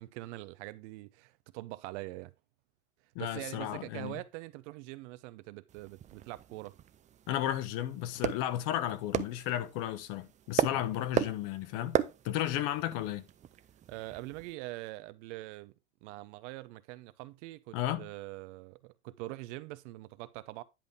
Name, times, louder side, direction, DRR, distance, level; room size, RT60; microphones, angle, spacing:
voice 1, 0.0-2.3 3.2-6.7 10.7-10.9 13.9-15.7 16.0-20.6, right 19 dB, 55° right, 0.9 m, -43 dB
voice 2, 3.1-4.2 7.3-12.0 12.2-13.3 17.7-18.1, left 12 dB, 50° left, 1.3 m, -33 dB
sound 1, 5.7-14.5, right 10 dB, 20° right, 0.5 m, -37 dB
10.5 x 5.1 x 3.7 m
hypercardioid pair, 100°, 43 cm